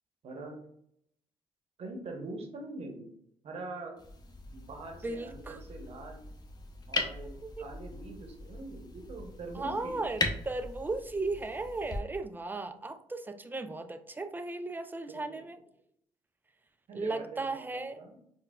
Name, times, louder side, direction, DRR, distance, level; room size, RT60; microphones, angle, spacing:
voice 1, 0.2-0.5 1.8-3.1 3.4-3.9 4.5-6.2 6.9-10.1 15.1-15.4 16.9-18.2, right 2 dB, 55° right, 2 dB, 0.9 m, -43 dB
sound 1, 4.0-12.0, left 2 dB, 35° left, 0.6 m, -39 dB
voice 2, 5.0-5.6 7.2-7.7 9.5-15.6 16.9-18.1, right 3 dB, 15° right, 9 dB, 0.4 m, -36 dB
3.9 x 2.3 x 2.3 m, 0.71 s
supercardioid pair, 60°, 12 cm